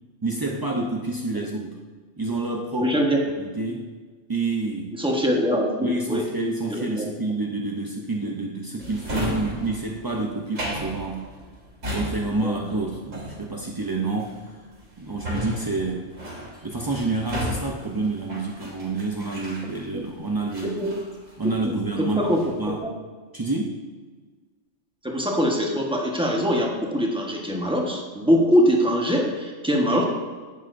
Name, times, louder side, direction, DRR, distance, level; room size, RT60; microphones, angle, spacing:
voice 1, 0.2-1.7 2.2-3.0 3.4-3.9 4.3-4.9 5.8-11.2 11.9-14.5 15.0-16.1 16.6-20.8 21.4-22.8 23.3-23.8, right 3 dB, 30° right, -1 dB, 0.4 m, -28 dB
voice 2, 2.8-3.2 4.9-6.2 6.7-7.0 12.4-12.5 19.9-20.0 20.8-20.9 21.6-22.4 22.8-22.9 25.0-30.0, equal, 5° right, -1 dB, 1.1 m, -23 dB
Drawer open or close, 8.8-20.1 20.5-21.8 22.1-22.6, equal, 85° right, 2.6 m, -35 dB
10.5 x 8.5 x 2.6 m, 1.4 s
omnidirectional pair, 1.3 m